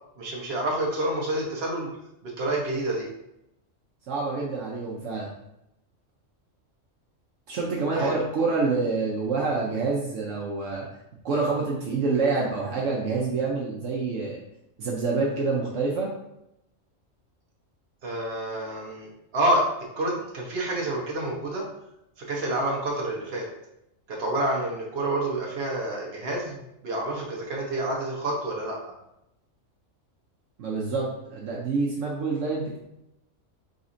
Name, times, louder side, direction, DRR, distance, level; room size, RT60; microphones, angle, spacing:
voice 1, 0.2-1.9 2.2-3.1 7.9-8.2 18.0-19.6 20.0-21.6 22.2-23.5 24.1-28.9, right 1 dB, 55° right, -2 dB, 1.2 m, -28 dB
voice 2, 4.1-5.3 7.5-10.8 11.2-14.4 14.8-16.1 30.6-32.8, right 4 dB, 75° right, -3 dB, 1.1 m, -27 dB
4.1 x 4.1 x 2.6 m, 0.84 s
omnidirectional pair, 1.3 m